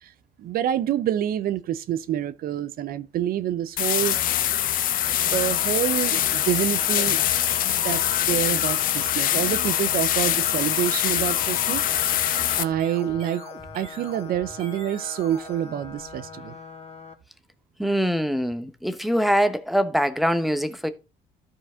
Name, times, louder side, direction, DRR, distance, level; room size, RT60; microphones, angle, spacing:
voice 1, 0.4-4.2 5.1-7.2 7.7-8.0 8.3-11.8 12.6-13.4 13.7-16.5, right 11 dB, 60° right, 0.7 m, -27 dB
sound 1, 3.8-12.6, left 11 dB, 55° left, 0.6 m, -23 dB
sound 2, 5.3-17.1, left 6 dB, 35° left, 1.6 m, -42 dB
sound 3, 11.1-16.5, right 4 dB, 35° right, 1.8 m, -45 dB
voice 2, 17.8-20.9, equal, ahead, 0.8 m, -23 dB
13.0 x 4.6 x 3.6 m
cardioid pair, 110°, 17 cm